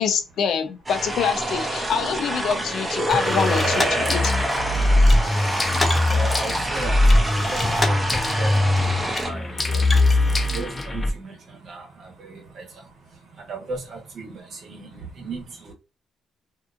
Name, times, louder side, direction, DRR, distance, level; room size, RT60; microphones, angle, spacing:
voice 1, 0.0-4.3, left 7 dB, 75° left, 0.5 m, -25 dB
sound 1, 0.9-9.3, right 1 dB, 20° right, 0.7 m, -27 dB
sound 2, 3.1-11.1, left 2 dB, 25° left, 0.6 m, -21 dB
voice 2, 4.3-15.7, right 3 dB, 65° right, 1.1 m, -38 dB
2.7 x 2.4 x 2.4 m
cardioid pair, 90°, 0 cm